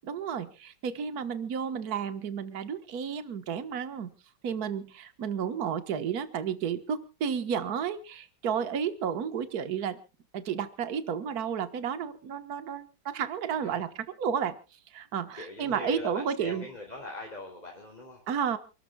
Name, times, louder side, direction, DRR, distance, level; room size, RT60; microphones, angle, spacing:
voice 1, 0.0-4.1 4.4-10.0 10.3-14.6 14.9-16.7 18.3-18.6, right 7 dB, 55° right, 11 dB, 1.8 m, -32 dB
voice 2, 15.3-18.2, left 2 dB, 20° left, 1 dB, 3.2 m, -41 dB
29.0 x 13.0 x 2.3 m, 0.32 s
omnidirectional pair, 2.0 m